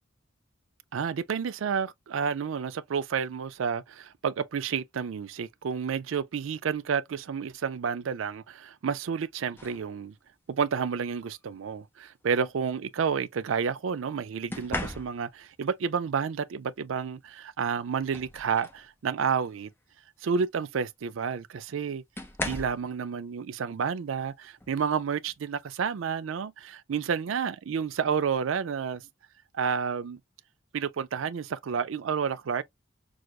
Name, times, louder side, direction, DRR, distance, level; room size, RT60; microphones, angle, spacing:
voice 1, 0.9-10.1 10.5-19.7 20.2-22.0 22.4-29.0 29.5-30.2 30.7-32.6, right 6 dB, 85° right, 0.4 m, -30 dB
sound 1, 9.6-9.9 11.2-11.4 14.5-15.5 17.2-17.3 17.8-18.9 19.4-19.6 21.0-21.1 22.2-22.9 24.6-24.8 25.3-25.6, left 1 dB, 10° left, 0.6 m, -37 dB
6.2 x 2.4 x 2.3 m
head